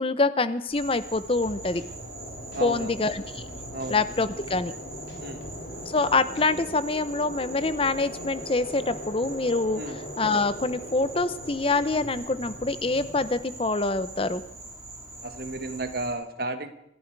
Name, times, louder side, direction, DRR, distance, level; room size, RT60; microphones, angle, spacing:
voice 1, 0.0-1.8 2.6-3.4 3.9-4.7 5.9-9.8 10.2-14.4, left 3 dB, 30° left, 13 dB, 0.7 m, -25 dB
Insect, 0.7-16.1, right 2 dB, 20° right, 4.2 m, -43 dB
sound 1, 1.3-6.7, equal, 80° left, 3.6 m, -49 dB
sound 2, 1.4-13.4, equal, 65° left, 4.1 m, -41 dB
voice 2, 2.5-3.0 3.7-4.0 5.2-5.4 9.7-10.0 15.2-16.7, right 2 dB, 55° right, 8 dB, 1.6 m, -33 dB
27.0 x 11.5 x 4.7 m, 0.80 s
head